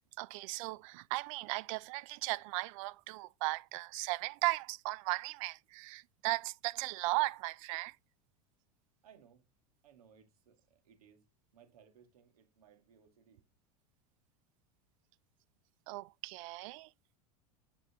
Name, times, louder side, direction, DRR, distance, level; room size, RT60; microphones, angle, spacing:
voice 1, 0.2-8.0 15.9-16.9, right 22 dB, 60° right, 0.5 m, -36 dB
voice 2, 9.0-9.5 9.8-11.3 11.5-13.4, right 8 dB, 80° right, 2.4 m, -63 dB
8.4 x 6.3 x 3.1 m
hypercardioid pair, 90°, 19 cm